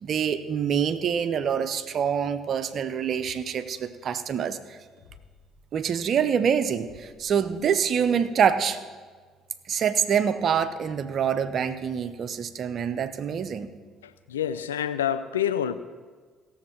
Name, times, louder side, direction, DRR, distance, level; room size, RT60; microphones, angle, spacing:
voice 1, 0.0-4.8 5.7-8.8 9.7-13.7, right 7 dB, 50° right, 11 dB, 0.7 m, -26 dB
sound 1, 3.1-3.4 5.0-5.5 6.8-8.0, left 5 dB, 70° left, 3.0 m, -54 dB
voice 2, 14.0-15.7, left 9 dB, 90° left, 12 dB, 0.4 m, -27 dB
17.0 x 7.2 x 4.5 m, 1.5 s
hypercardioid pair, 55°, 0 cm